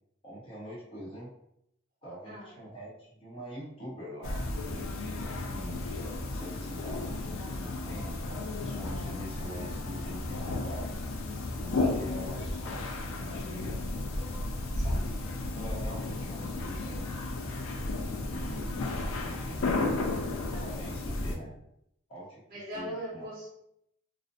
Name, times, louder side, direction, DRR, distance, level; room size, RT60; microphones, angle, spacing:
voice 1, 0.2-1.3 2.0-5.8 6.3-11.0 11.6-13.8 14.8-17.1 18.3-19.6 20.0-20.3 20.6-21.5 22.1-23.3, right 1 dB, 30° left, -6 dB, 0.8 m, -44 dB
voice 2, 2.2-2.6 11.7-12.2 14.7-15.2 20.2-20.9 22.5-23.5, equal, 45° right, -6 dB, 0.9 m, -42 dB
sound 1, 4.2-21.3, left 2 dB, 90° left, 0.4 m, -33 dB
2.6 x 2.0 x 2.5 m, 0.76 s
head